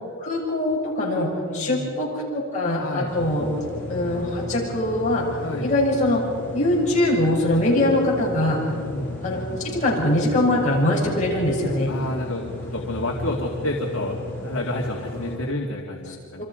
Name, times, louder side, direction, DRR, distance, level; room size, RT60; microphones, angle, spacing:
voice 1, 0.2-3.5 3.9-5.3 5.6-6.2 6.5-8.6 9.2-9.4 9.6-11.9 16.4-16.5, left 1 dB, 35° left, -4 dB, 7.0 m, -22 dB
voice 2, 1.5-1.9 2.8-3.1 5.4-5.7 8.6-9.3 11.9-12.5 12.7-14.2 14.4-16.4, left 1 dB, 65° left, -1 dB, 2.4 m, -29 dB
sound 1, 3.1-15.4, left 1 dB, 10° left, 7.3 m, -35 dB
28.0 x 26.0 x 5.2 m, 2.3 s
head